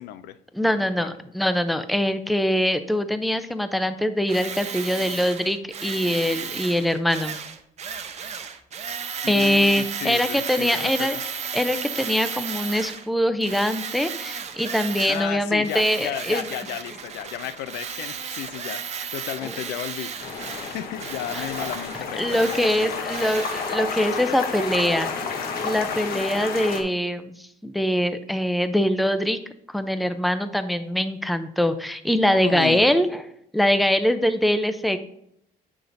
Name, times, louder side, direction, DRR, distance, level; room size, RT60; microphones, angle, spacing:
voice 1, 0.0-0.4 1.0-1.1 9.2-11.2 15.1-18.8 19.1-20.3 20.7-23.3 32.4-32.9, left 12 dB, 80° left, 14 dB, 0.4 m, -33 dB
voice 2, 0.5-7.4 9.3-11.2 11.5-16.4 19.4-19.5 21.3-21.4 22.2-25.1 25.6-27.4 27.6-29.4 29.7-33.2 33.5-35.0, equal, ahead, 10 dB, 0.4 m, -23 dB
Tools, 4.3-13.1 13.4-15.3 15.6-23.7, right 6 dB, 40° right, 0.7 m, -34 dB
sound 1, 20.2-26.8, left 4 dB, 65° left, 1.0 m, -31 dB
6.9 x 5.9 x 2.6 m, 0.74 s
cardioid pair, 110°, 17 cm